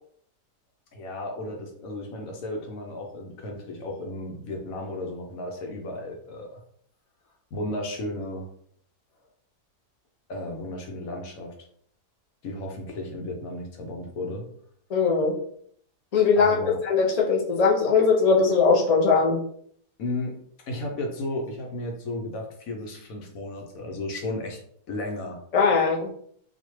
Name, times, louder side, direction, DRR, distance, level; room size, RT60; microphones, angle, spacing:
voice 1, 0.9-6.6 7.5-8.5 10.3-11.5 12.4-14.4 16.4-16.8 20.0-20.3 20.7-24.6 24.9-25.4, left 1 dB, 65° left, 1 dB, 1.2 m, -34 dB
voice 2, 14.9-15.4 16.1-16.6 16.8-19.4 25.5-26.1, left 5 dB, 85° left, -1 dB, 0.3 m, -20 dB
4.1 x 2.3 x 3.1 m, 0.64 s
omnidirectional pair, 1.7 m